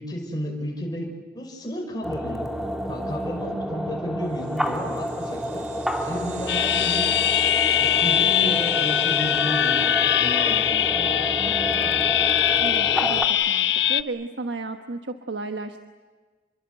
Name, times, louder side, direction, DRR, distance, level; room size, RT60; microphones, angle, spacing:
voice 1, 0.0-2.5 2.9-5.7 6.0-7.1 7.8-9.9 10.2-12.1, equal, 20° left, 0 dB, 5.7 m, -33 dB
sound 1, 2.0-13.2, equal, ahead, 1.9 m, -30 dB
sound 2, 4.4-11.2, right 7 dB, 40° right, 3.0 m, -44 dB
sound 3, 6.5-14.0, left 11 dB, 75° left, 0.7 m, -22 dB
voice 2, 12.6-15.9, right 3 dB, 80° right, 7 dB, 1.3 m, -33 dB
30.0 x 23.0 x 8.1 m, 1.4 s
head